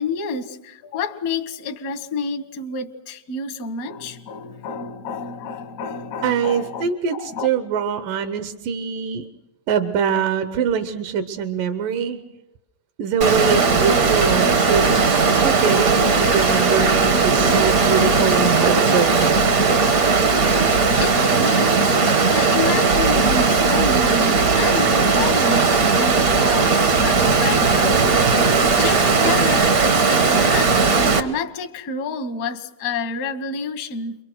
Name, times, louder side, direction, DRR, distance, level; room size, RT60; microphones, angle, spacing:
voice 1, 0.0-7.5 21.0-22.0 22.3-30.7 31.0-34.2, left 4 dB, 60° left, 0.9 m, -29 dB
voice 2, 6.2-9.2 9.7-12.2 13.0-19.5, right 7 dB, 80° right, 2.7 m, -23 dB
Water, 13.2-31.2, right 4 dB, 60° right, 0.9 m, -17 dB
29.5 x 23.5 x 6.3 m
omnidirectional pair, 3.8 m